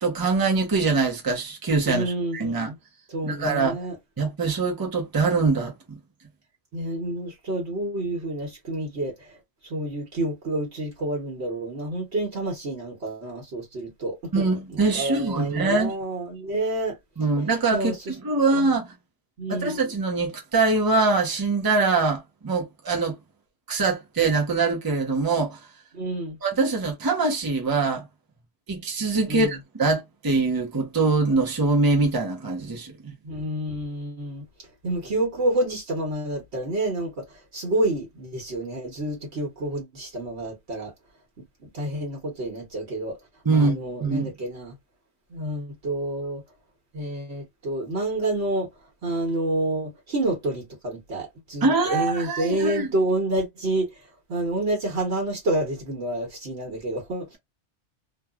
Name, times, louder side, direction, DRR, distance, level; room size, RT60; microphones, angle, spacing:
voice 1, 0.0-2.7 3.2-3.8 4.2-5.7 14.3-16.0 17.2-18.0 18.2-18.9 19.5-23.2 23.7-25.6 26.4-28.0 28.7-33.1 43.4-44.3 51.6-52.9, right 3 dB, 20° right, 0.7 m, -23 dB
voice 2, 1.9-2.7 3.1-4.0 6.7-9.4 9.6-16.9 17.7-18.1 18.5-18.7 19.4-19.8 25.9-26.4 29.3-29.6 33.2-34.4 34.8-37.2 37.5-40.9 41.6-43.2 43.5-44.7 45.3-46.4 46.9-48.7 49.0-53.9 54.3-57.3, right 1 dB, 70° right, 1.4 m, -29 dB
3.1 x 2.3 x 2.3 m
omnidirectional pair, 1.2 m